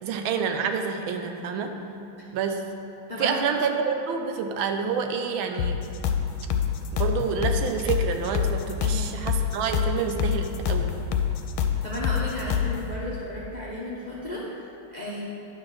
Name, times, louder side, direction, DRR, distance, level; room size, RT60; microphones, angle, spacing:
voice 1, 0.0-1.8 2.3-2.6 3.2-5.8 6.9-10.9, right 6 dB, 80° right, 5 dB, 1.4 m, -28 dB
voice 2, 1.9-2.3 3.1-3.6 8.8-9.1 11.6-15.2, left 1 dB, 65° left, -7 dB, 0.4 m, -34 dB
sound 1, 5.6-12.8, left 8 dB, 90° left, 1.5 m, -26 dB
10.0 x 4.2 x 6.1 m, 2.8 s
omnidirectional pair, 2.3 m